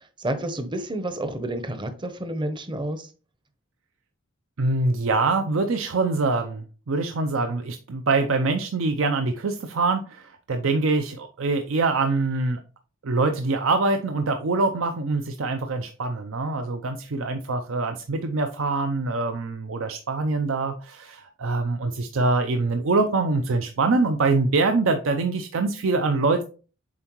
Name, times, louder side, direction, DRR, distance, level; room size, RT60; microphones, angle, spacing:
voice 1, 0.2-3.1, right 1 dB, 20° right, 0.7 m, -30 dB
voice 2, 4.6-12.6 13.0-26.4, right 3 dB, 65° right, 0.5 m, -24 dB
7.3 x 4.4 x 3.0 m
head